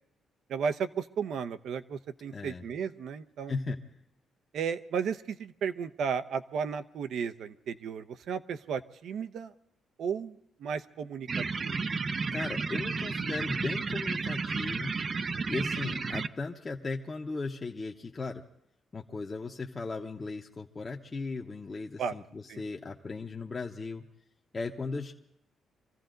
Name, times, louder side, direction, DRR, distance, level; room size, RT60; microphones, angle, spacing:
voice 1, 0.5-3.5 4.5-9.5 10.0-11.7 15.3-15.4 22.0-22.1 22.5-22.6, right 6 dB, 70° right, 11 dB, 0.8 m, -34 dB
voice 2, 2.3-2.6 3.5-3.8 12.3-14.9 15.5-18.4 18.9-24.0 24.5-25.1, left 3 dB, 30° left, 0 dB, 1.0 m, -37 dB
sound 1, 11.3-16.3, right 4 dB, 40° right, 0.6 m, -32 dB
25.0 x 15.0 x 3.9 m, 0.78 s
cardioid pair, 120°, 0 cm